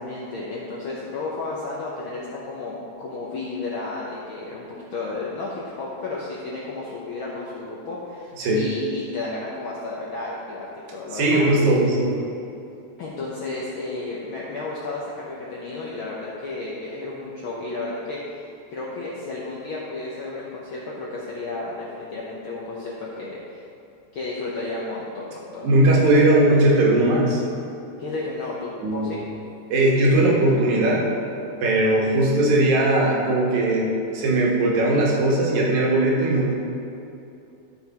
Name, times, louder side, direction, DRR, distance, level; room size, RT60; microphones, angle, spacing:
voice 1, 0.0-11.5 13.0-23.6 24.1-25.7 28.0-29.2, left 3 dB, 75° left, -5 dB, 1.2 m, -32 dB
voice 2, 11.1-12.1 25.6-27.4 28.8-29.2 29.7-31.1 31.6-36.6, right 1 dB, 80° right, -3 dB, 2.7 m, -19 dB
12.5 x 5.8 x 2.9 m, 2.7 s
omnidirectional pair, 3.3 m